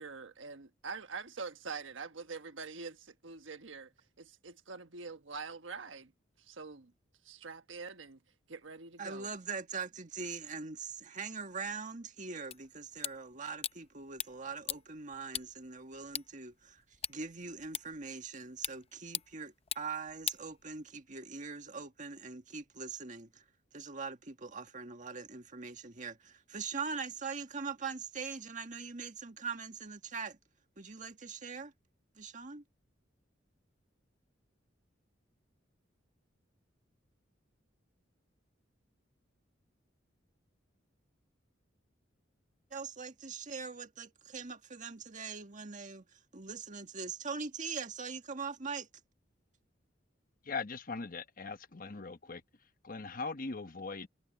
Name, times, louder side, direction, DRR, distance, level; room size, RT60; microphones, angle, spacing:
voice 1, 0.0-3.9 4.2-6.1 6.4-6.9 7.2-8.2 8.5-9.3, right 4 dB, 85° right, 1.3 m, -45 dB
voice 2, 9.0-16.8 17.1-23.4 23.7-30.4 30.8-31.7 32.2-32.6 42.7-48.9, right 5 dB, 40° right, 1.7 m, -42 dB
sound 1, 12.5-21.1, left 10 dB, 30° left, 0.6 m, -43 dB
voice 3, 50.4-52.4 52.8-54.1, left 4 dB, 50° left, 1.1 m, -40 dB
head